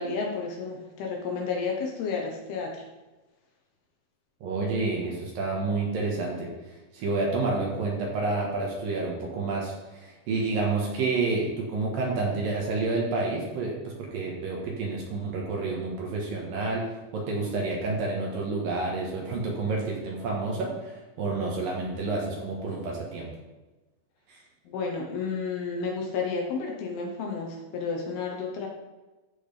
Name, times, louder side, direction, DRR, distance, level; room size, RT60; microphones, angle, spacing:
voice 1, 0.0-2.8 24.7-28.7, left 4 dB, 70° left, 0 dB, 2.8 m, -31 dB
voice 2, 4.4-6.5 6.9-23.3 24.3-24.4, right 3 dB, 60° right, -2 dB, 2.9 m, -29 dB
14.5 x 6.3 x 3.5 m, 1.1 s
omnidirectional pair, 5.2 m